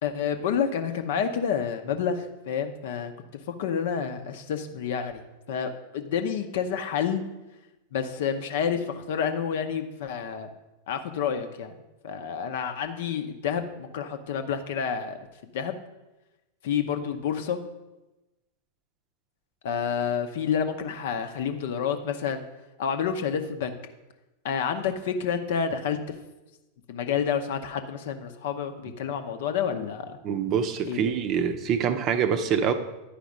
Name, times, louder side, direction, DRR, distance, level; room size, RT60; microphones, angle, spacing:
voice 1, 0.0-3.1 3.5-7.2 7.9-10.5 10.9-11.7 12.0-15.8 16.6-17.6 19.6-22.4 22.8-23.8 24.4-26.0 26.9-30.2 30.9-31.0, left 7 dB, 55° left, 8 dB, 0.7 m, -29 dB
voice 2, 30.2-32.7, right 7 dB, 35° right, 9 dB, 0.7 m, -25 dB
10.5 x 5.0 x 5.0 m, 1.0 s
figure-of-eight pair, 90°, 0 cm